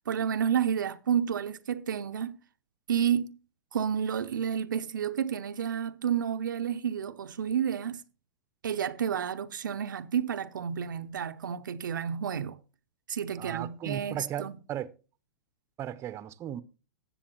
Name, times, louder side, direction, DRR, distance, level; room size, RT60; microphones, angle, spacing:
voice 1, 0.0-2.4 2.9-3.3 3.7-8.0 8.6-12.6 13.1-14.6, right 8 dB, 75° right, 0.6 m, -30 dB
voice 2, 13.4-14.9 15.8-16.6, right 11 dB, 25° right, 0.7 m, -36 dB
19.5 x 7.0 x 3.0 m
hypercardioid pair, 110°, 10 cm